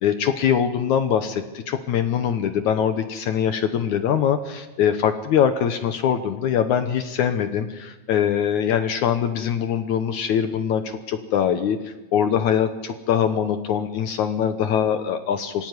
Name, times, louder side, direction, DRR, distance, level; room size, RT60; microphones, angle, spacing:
voice 1, 0.0-15.7, left 8 dB, 70° left, 10 dB, 1.9 m, -23 dB
24.0 x 16.5 x 9.5 m, 1.1 s
omnidirectional pair, 4.6 m